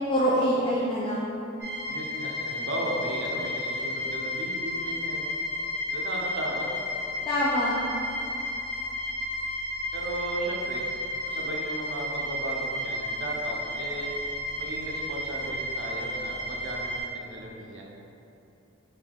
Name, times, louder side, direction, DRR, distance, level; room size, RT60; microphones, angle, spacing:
voice 1, 0.0-1.4 7.3-7.8, equal, 25° left, -8 dB, 0.4 m, -25 dB
sound 1, 1.6-17.0, left 1 dB, 10° right, 0.9 m, -32 dB
voice 2, 1.9-5.3 5.9-6.7 9.9-10.9 11.2-14.1 14.6-17.8, right 1 dB, 60° right, -1 dB, 0.5 m, -36 dB
3.5 x 2.7 x 3.4 m, 2.8 s
head